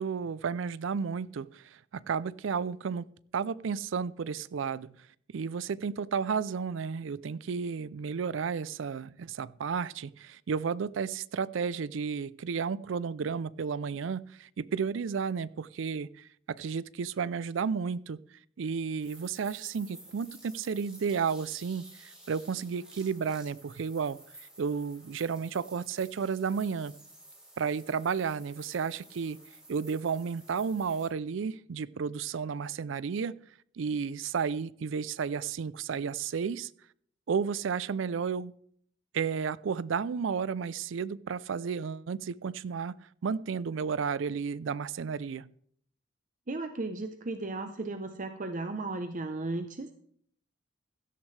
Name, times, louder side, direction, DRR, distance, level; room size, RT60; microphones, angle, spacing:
voice 1, 0.0-3.1 3.3-4.9 5.3-18.2 18.6-24.2 24.6-26.9 27.6-29.4 29.7-33.3 33.8-36.7 37.3-38.5 39.1-43.0 43.2-45.5, right 6 dB, 75° right, 19 dB, 0.4 m, -32 dB
sound 1, 19.0-31.1, right 1 dB, 5° right, 4.5 m, -53 dB
voice 2, 46.5-49.9, right 2 dB, 40° right, 7 dB, 0.7 m, -35 dB
16.5 x 13.0 x 3.3 m, 0.64 s
head